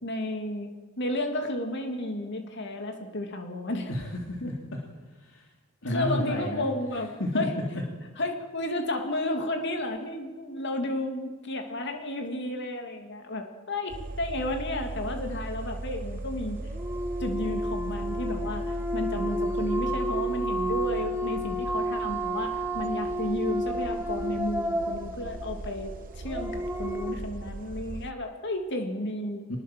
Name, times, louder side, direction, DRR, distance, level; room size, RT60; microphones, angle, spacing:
voice 1, 0.0-3.9 5.9-7.5 8.2-16.6 17.2-25.9 26.2-29.5, left 1 dB, 60° left, 5 dB, 3.0 m, -32 dB
voice 2, 3.9-4.5 5.2-5.5 5.8-6.6 7.2-7.5 29.5-29.6, left 1 dB, 75° left, 0 dB, 3.4 m, -31 dB
sound 1, 13.9-28.1, right 2 dB, 45° right, 0.7 m, -38 dB
sound 2, 16.6-27.2, equal, 10° right, 1.5 m, -31 dB
25.0 x 20.5 x 7.7 m, 1.2 s
head